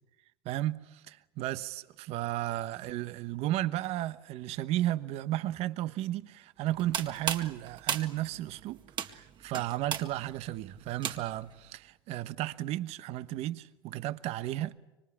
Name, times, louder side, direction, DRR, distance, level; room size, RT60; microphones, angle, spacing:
voice 1, 0.4-14.7, right 14 dB, 55° right, 1.2 m, -34 dB
sound 1, 6.7-11.5, right 8 dB, 35° right, 1.9 m, -36 dB
25.5 x 24.5 x 8.7 m
hypercardioid pair, 95°, 13 cm